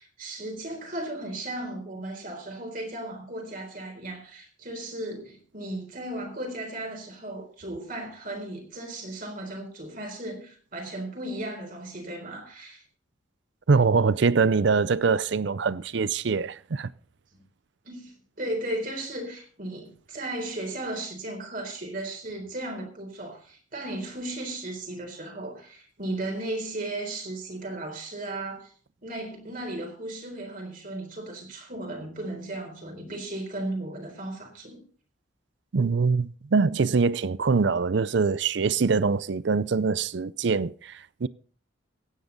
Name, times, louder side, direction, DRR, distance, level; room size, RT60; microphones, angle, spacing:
voice 1, 0.0-12.8 17.8-28.7 29.0-34.8, right 1 dB, 45° right, 4.1 m, -35 dB
voice 2, 13.7-16.9 35.7-41.3, right 4 dB, 60° right, 0.5 m, -23 dB
16.0 x 9.7 x 4.0 m
head